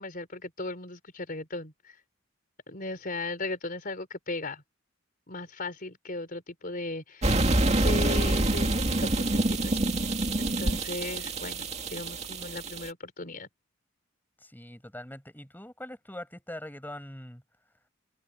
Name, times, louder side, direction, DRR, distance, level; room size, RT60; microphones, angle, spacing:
voice 1, 0.0-2.0 2.7-4.6 5.3-9.9 10.4-13.5, left 2 dB, 45° left, 4.2 m, -37 dB
sound 1, 7.2-12.9, right 2 dB, 35° right, 2.2 m, -26 dB
voice 2, 14.4-17.4, left 1 dB, 10° left, 6.4 m, -42 dB
head